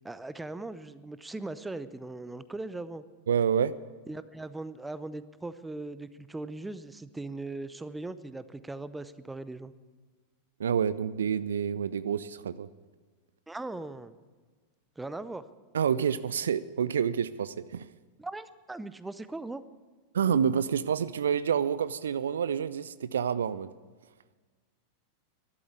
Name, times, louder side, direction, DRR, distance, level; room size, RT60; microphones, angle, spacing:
voice 1, 0.0-3.0 4.1-9.7 13.5-14.2 15.0-15.4 18.2-19.6, right 2 dB, 10° right, 15 dB, 0.6 m, -39 dB
voice 2, 3.3-3.7 10.6-12.7 15.7-17.9 20.1-23.7, right 7 dB, 65° right, 17 dB, 0.4 m, -28 dB
12.5 x 11.5 x 8.6 m, 1.4 s
figure-of-eight pair, 90°, 0 cm